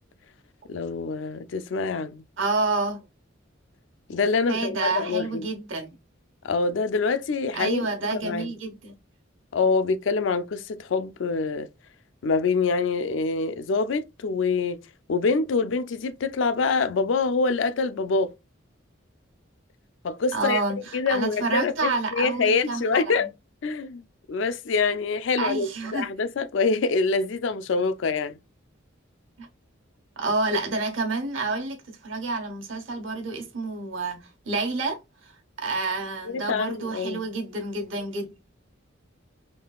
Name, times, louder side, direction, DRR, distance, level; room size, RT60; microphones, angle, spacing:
voice 1, 0.7-2.2 4.1-5.5 6.4-7.9 8.1-8.5 9.5-11.7 12.2-14.8 15.1-18.3 20.0-20.6 20.9-23.3 23.6-24.0 24.3-28.4 36.3-37.2, left 4 dB, 70° left, 0.4 m, -25 dB
voice 2, 2.4-3.0 4.5-6.0 7.5-9.0 20.3-23.3 25.4-26.1 29.4-29.5 30.2-38.3, right 3 dB, 80° right, 1.2 m, -29 dB
3.7 x 2.4 x 2.3 m
head